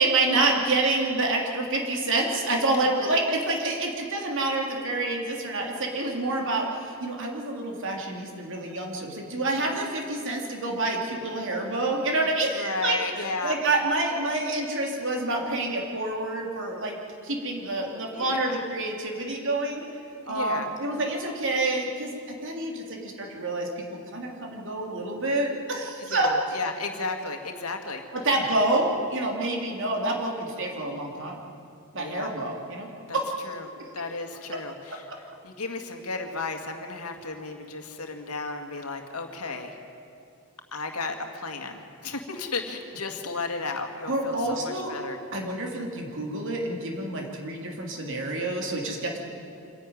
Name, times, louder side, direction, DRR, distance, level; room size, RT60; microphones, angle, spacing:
voice 1, 0.0-17.0 17.2-19.9 20.3-22.1 22.4-26.3 28.2-31.4 31.9-32.9 33.1-33.2 44.1-44.9 45.3-49.2, right 2 dB, 60° right, 0 dB, 3.0 m, -28 dB
voice 2, 12.5-13.6 18.1-18.6 20.2-20.7 26.1-28.0 32.0-32.3 33.1-33.2 33.4-39.8 40.7-45.2, left 3 dB, 80° left, 5 dB, 2.0 m, -34 dB
26.0 x 11.0 x 9.5 m, 2.5 s
head